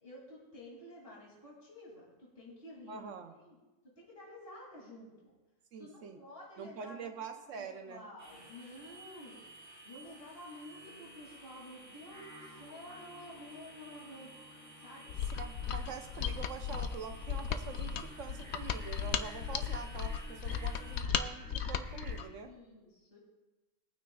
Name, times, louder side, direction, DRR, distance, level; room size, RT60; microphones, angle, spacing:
voice 1, 0.0-3.0 3.2-3.6 4.0-5.3 5.8-7.1 7.6-9.4 9.8-14.3 14.8-15.1 22.4-23.2, left 1 dB, 50° left, -5 dB, 2.8 m, -51 dB
voice 2, 2.9-3.3 5.7-6.2 6.6-8.0 15.4-22.5, right 6 dB, 80° right, 5 dB, 1.1 m, -45 dB
sound 1, 8.2-21.0, right 1 dB, 10° left, 3.0 m, -54 dB
Singing, 12.1-22.2, equal, 25° left, 4.3 m, -55 dB
Mechanisms, 15.1-22.3, left 8 dB, 65° left, 0.8 m, -36 dB
20.5 x 9.2 x 2.3 m, 1.1 s
omnidirectional pair, 1.3 m